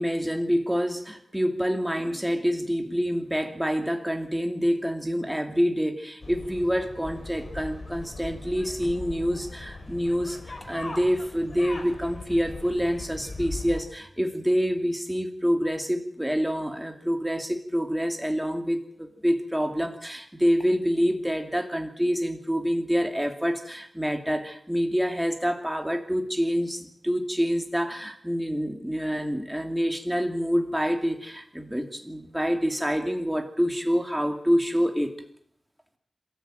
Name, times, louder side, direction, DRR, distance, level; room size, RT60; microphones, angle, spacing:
voice 1, 0.0-35.1, equal, 5° right, 5 dB, 2.6 m, -27 dB
sound 1, 6.2-13.8, left 2 dB, 45° left, 3.9 m, -39 dB
28.5 x 13.5 x 9.0 m, 0.69 s
wide cardioid pair, 115°, 0 cm